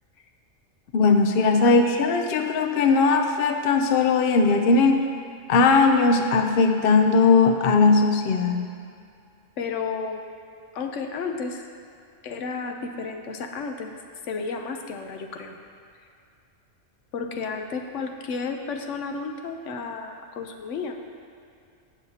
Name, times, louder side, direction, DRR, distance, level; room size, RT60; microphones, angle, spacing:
voice 1, 0.9-5.1 5.5-8.6, left 4 dB, 60° left, 5 dB, 0.7 m, -19 dB
voice 2, 9.6-10.2 10.7-11.7 12.2-13.9 14.2-15.6 17.1-21.0, left 4 dB, 75° left, 4 dB, 1.0 m, -32 dB
15.5 x 6.4 x 2.8 m, 2.4 s
omnidirectional pair, 1.3 m